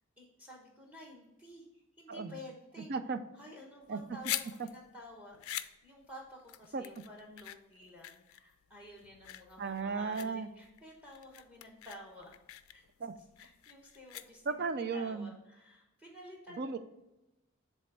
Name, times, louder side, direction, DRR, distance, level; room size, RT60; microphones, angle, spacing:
voice 1, 0.2-2.9 3.3-12.3 12.7-12.8 13.4-14.6 14.9-16.7, left 1 dB, 5° right, 0 dB, 1.1 m, -52 dB
sound 1, 3.8-14.7, left 14 dB, 80° left, 0.4 m, -44 dB
voice 2, 9.6-10.5 13.0-13.1 14.5-15.3 16.6-16.8, right 4 dB, 50° right, 11 dB, 0.5 m, -35 dB
7.4 x 3.4 x 5.4 m, 0.97 s
head